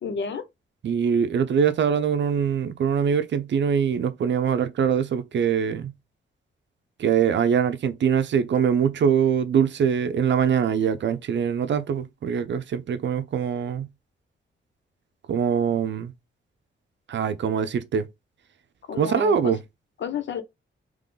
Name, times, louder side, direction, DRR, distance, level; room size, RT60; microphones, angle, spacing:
voice 1, 0.0-0.4 18.9-19.5 20.0-20.4, left 6 dB, 60° left, 0.9 m, -30 dB
voice 2, 0.8-5.9 7.0-13.9 15.3-16.1 17.1-18.1 19.0-19.6, right 7 dB, 60° right, 0.6 m, -23 dB
3.7 x 3.1 x 3.8 m
wide cardioid pair, 140°, 21 cm